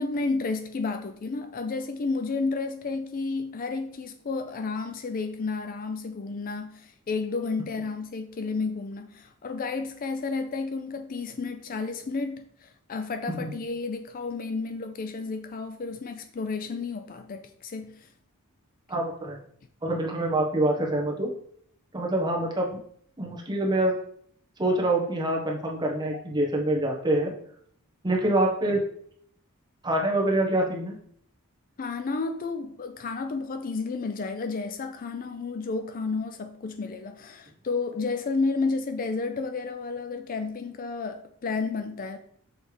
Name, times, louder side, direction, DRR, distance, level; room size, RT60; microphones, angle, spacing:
voice 1, 0.0-18.1 31.8-42.2, left 4 dB, 40° left, 0.4 m, -31 dB
voice 2, 18.9-19.4 19.8-21.3 21.9-22.8 23.2-23.9 24.6-27.3 28.0-28.8 29.8-30.9, right 1 dB, 20° right, 1.2 m, -25 dB
6.4 x 3.4 x 4.9 m
head